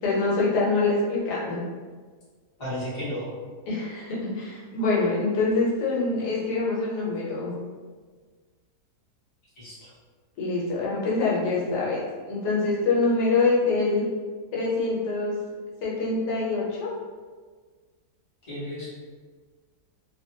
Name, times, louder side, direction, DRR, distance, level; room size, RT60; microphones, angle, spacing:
voice 1, 0.0-1.6 3.7-7.5 10.4-12.0 12.3-14.0 14.5-15.4 15.8-16.9, left 3 dB, 80° left, -5 dB, 1.2 m, -25 dB
voice 2, 2.6-3.3 9.6-9.9 18.5-18.9, equal, 20° left, -10 dB, 0.8 m, -33 dB
2.8 x 2.1 x 2.6 m, 1.5 s
omnidirectional pair, 1.7 m